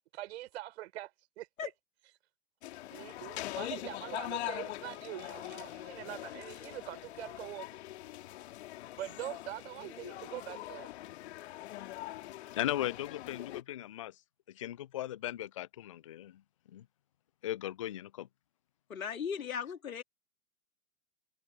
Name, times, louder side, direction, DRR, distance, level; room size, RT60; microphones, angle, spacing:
voice 1, 0.1-1.7 2.9-7.7 8.9-10.9, right 15 dB, 45° right, 6.2 m, -43 dB
sound 1, 2.6-13.6, left 15 dB, 45° left, 2.3 m, -43 dB
voice 2, 12.6-14.1 14.6-16.3 16.7-16.8 17.4-18.3, left 13 dB, 25° left, 0.4 m, -37 dB
voice 3, 18.9-20.0, left 7 dB, 65° left, 3.0 m, -37 dB
figure-of-eight pair, 110°, 45 cm